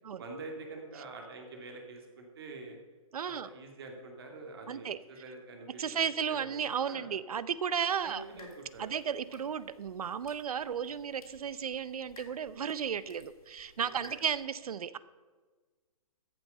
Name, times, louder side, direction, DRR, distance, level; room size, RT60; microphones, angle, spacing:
voice 1, 0.2-2.8 3.2-6.0 6.3-7.1 7.6-7.7 8.0-8.9 9.3-9.4 13.8-14.2, right 3 dB, 40° right, 3 dB, 2.4 m, -46 dB
voice 2, 3.1-3.5 4.7-5.0 5.8-8.2 8.8-15.0, right 7 dB, 85° right, 17 dB, 0.7 m, -34 dB
sound 1, 7.9-14.4, left 3 dB, 85° left, 3.6 m, -58 dB
14.5 x 7.8 x 5.4 m, 1.4 s
hypercardioid pair, 175°, 18 cm